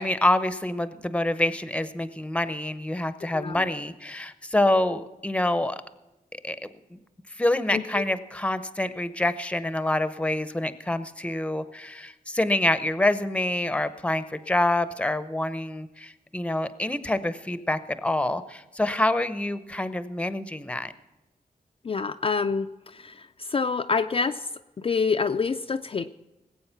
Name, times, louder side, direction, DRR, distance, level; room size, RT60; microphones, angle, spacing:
voice 1, 0.0-5.8 6.4-6.6 6.9-7.0 7.4-20.9, left 1 dB, 10° left, 13 dB, 0.7 m, -26 dB
voice 2, 3.3-3.6 7.7-8.0 21.8-24.5 24.8-26.1, left 5 dB, 40° left, 6 dB, 0.4 m, -27 dB
19.5 x 8.5 x 5.8 m, 1.0 s
wide cardioid pair, 130°, 15 cm